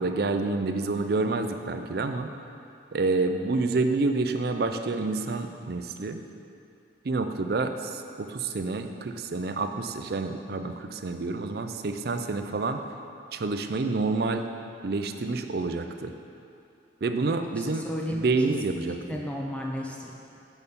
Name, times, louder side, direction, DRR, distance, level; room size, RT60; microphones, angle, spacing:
voice 1, 0.0-2.3 2.9-6.2 7.0-12.8 13.3-14.5 14.8-16.1 17.0-19.0, right 3 dB, 55° right, 7 dB, 0.4 m, -28 dB
voice 2, 17.8-18.2 18.7-20.1, equal, 5° left, -1 dB, 0.7 m, -34 dB
6.9 x 6.4 x 5.3 m, 2.6 s
head